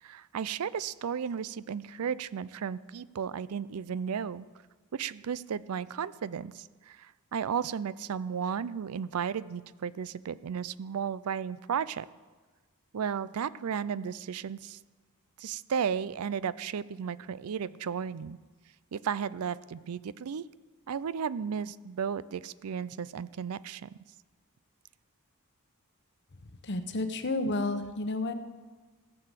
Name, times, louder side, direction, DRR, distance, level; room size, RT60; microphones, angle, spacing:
voice 1, 0.0-4.4 4.9-12.1 12.9-14.8 15.4-18.4 18.9-20.5 20.9-23.9, right 7 dB, 80° right, 18 dB, 0.4 m, -34 dB
voice 2, 26.6-28.3, left 2 dB, 50° left, 9 dB, 1.0 m, -31 dB
16.5 x 6.8 x 7.4 m, 1.4 s
head